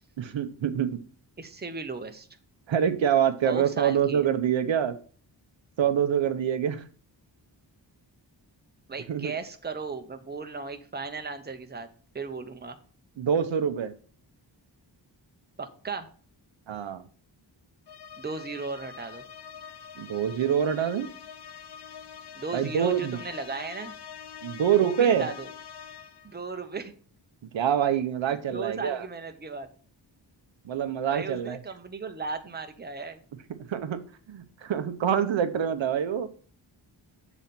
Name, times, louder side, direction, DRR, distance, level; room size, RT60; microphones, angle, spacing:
voice 1, 0.2-1.0 2.7-5.0 5.8-6.8 9.1-9.3 13.2-13.9 16.7-17.0 20.0-21.1 22.5-23.2 24.4-25.3 27.5-29.1 30.6-31.6 33.7-34.0 34.3-36.3, right 8 dB, 85° right, 10 dB, 0.8 m, -25 dB
voice 2, 1.4-2.3 3.4-4.2 8.9-11.9 12.1-12.8 15.6-16.1 18.2-19.2 22.3-23.9 24.8-25.5 26.2-26.9 28.3-29.7 31.1-33.2, right 4 dB, 20° right, 6 dB, 0.8 m, -36 dB
sound 1, 17.9-26.4, left 8 dB, 60° left, 0.8 m, -44 dB
7.3 x 4.1 x 5.8 m, 0.43 s
wide cardioid pair, 105°, 45 cm